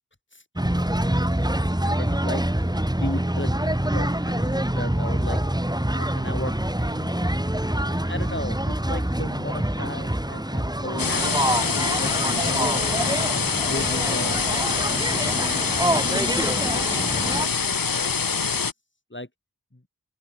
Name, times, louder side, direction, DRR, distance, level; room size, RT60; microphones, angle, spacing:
sound 1, 0.6-17.5, right 1 dB, 10° right, 2.1 m, -26 dB
voice 1, 1.8-2.4 2.9-5.4 5.9-7.1 7.9-13.1 13.6-16.2 16.7-18.7 19.1-19.3, left 1 dB, 35° left, 7.1 m, -36 dB
sound 2, 11.0-18.7, left 5 dB, 85° left, 0.9 m, -25 dB
open air
wide cardioid pair, 45°, 33 cm